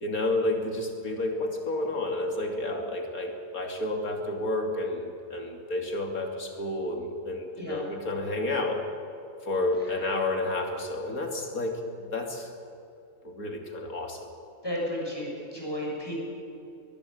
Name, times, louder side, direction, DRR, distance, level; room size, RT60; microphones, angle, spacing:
voice 1, 0.0-8.8 9.5-11.8 12.1-12.5 13.2-14.3, left 2 dB, 75° left, 3 dB, 3.3 m, -30 dB
voice 2, 14.6-16.1, equal, 15° left, -3 dB, 6.8 m, -33 dB
22.0 x 21.0 x 8.2 m, 2.6 s
omnidirectional pair, 1.5 m